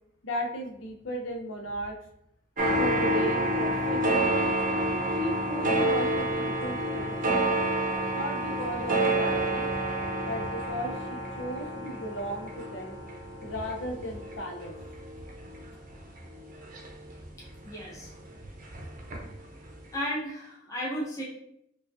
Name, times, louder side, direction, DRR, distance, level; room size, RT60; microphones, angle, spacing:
voice 1, 0.2-2.0 2.8-4.4 5.1-7.4 8.1-9.7 10.2-13.0 13.4-14.7, equal, 85° left, 2 dB, 0.7 m, -35 dB
sound 1, 2.6-17.7 18.0-19.4 19.7-19.8, right 1 dB, 45° right, 0.6 m, -29 dB
voice 2, 17.6-18.1 19.9-21.2, equal, 15° left, -5 dB, 0.7 m, -34 dB
4.8 x 2.4 x 2.6 m, 0.76 s
head